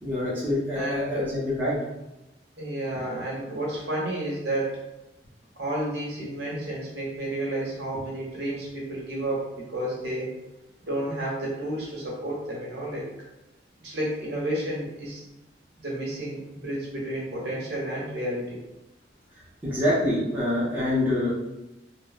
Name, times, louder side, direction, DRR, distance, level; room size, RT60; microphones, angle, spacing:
voice 1, 0.0-1.8 19.6-21.3, left 1 dB, 10° right, -9 dB, 0.6 m, -25 dB
voice 2, 0.7-1.3 2.6-4.8 5.6-10.3 10.9-13.1 13.8-15.3 15.8-18.6, right 1 dB, 65° right, -4 dB, 0.9 m, -31 dB
3.1 x 2.0 x 2.3 m, 0.94 s
head